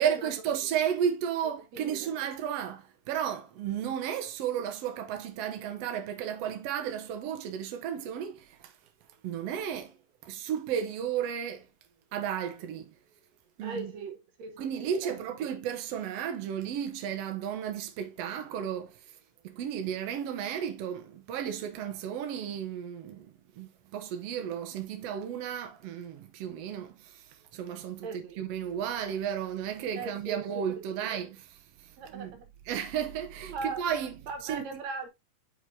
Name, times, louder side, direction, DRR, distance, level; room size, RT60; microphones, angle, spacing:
voice 1, 0.0-8.7 9.2-10.0 10.2-11.7 12.1-12.9 13.6-13.9 14.6-19.1 19.4-31.4 31.8-32.3 32.7-34.2 34.4-34.8, right 9 dB, 75° right, 1.4 m, -33 dB
voice 2, 1.7-2.1 13.6-15.2 28.0-28.4 30.0-30.5 31.1-31.2 32.0-32.5 33.5-33.8 34.3-35.1, right 4 dB, 60° right, 2.2 m, -39 dB
8.8 x 4.5 x 2.7 m
omnidirectional pair, 4.0 m